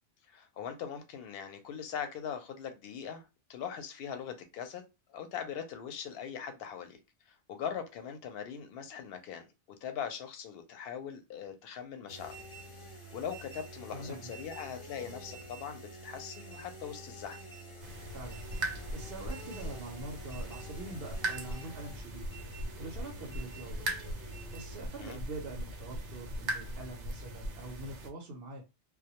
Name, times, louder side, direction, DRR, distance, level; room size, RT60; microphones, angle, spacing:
voice 1, 0.3-4.8 5.1-7.0 7.3-9.4 9.8-12.4 13.1-17.4 25.0-25.2, left 8 dB, 65° left, 0.7 m, -41 dB
sound 1, 12.1-24.8, right 1 dB, 30° left, 0.6 m, -48 dB
voice 2, 13.9-14.3 18.1-22.3 22.5-23.8 24.5-28.6, right 2 dB, 65° right, 0.8 m, -44 dB
sound 2, 17.8-28.1, right 1 dB, 85° right, 0.9 m, -39 dB
2.1 x 2.0 x 2.8 m
omnidirectional pair, 1.2 m